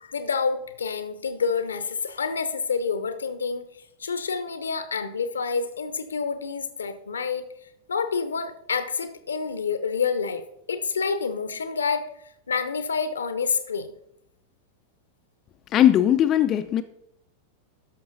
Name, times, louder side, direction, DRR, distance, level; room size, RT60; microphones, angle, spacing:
voice 1, 0.0-3.7 4.0-7.4 7.9-12.1 12.5-13.9, left 5 dB, 70° left, 0.8 m, -28 dB
voice 2, 15.7-16.8, left 11 dB, 30° left, 0.5 m, -19 dB
12.5 x 6.1 x 4.0 m
figure-of-eight pair, 90°, 0 cm